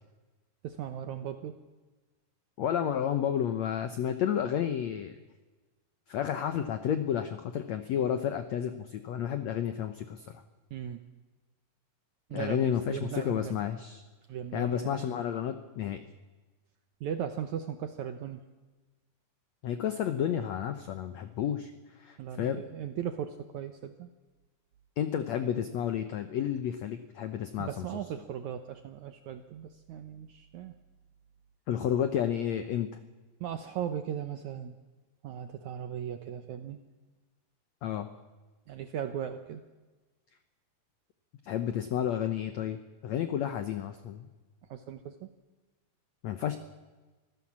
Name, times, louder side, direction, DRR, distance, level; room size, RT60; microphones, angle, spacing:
voice 1, 0.6-1.6 10.7-11.0 12.3-13.6 14.3-15.0 17.0-18.4 22.2-24.1 27.6-30.7 33.4-34.8 35.2-36.8 38.7-39.6 44.6-45.3, right 9 dB, 75° right, 8 dB, 1.7 m, -37 dB
voice 2, 2.6-5.1 6.1-10.4 12.3-14.0 14.5-16.0 19.6-22.6 25.0-27.7 31.7-32.9 37.8-38.1 41.4-44.3 46.2-46.6, left 9 dB, 85° left, 9 dB, 1.5 m, -31 dB
25.0 x 16.0 x 7.4 m, 1.2 s
omnidirectional pair, 4.5 m